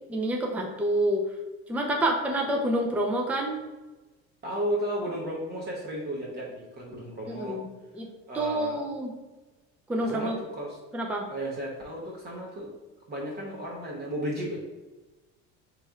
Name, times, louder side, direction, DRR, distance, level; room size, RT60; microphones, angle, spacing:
voice 1, 0.1-1.3 1.7-3.6 7.3-7.7 7.9-8.1 8.3-9.1 9.9-10.4 10.9-11.3, right 1 dB, 5° right, 1 dB, 0.5 m, -27 dB
voice 2, 4.4-7.6 8.3-8.8 10.0-10.8 11.3-12.7 13.1-14.6, equal, 35° right, -3 dB, 1.0 m, -34 dB
4.1 x 3.1 x 3.7 m, 1.1 s
cardioid pair, 125°, 30 cm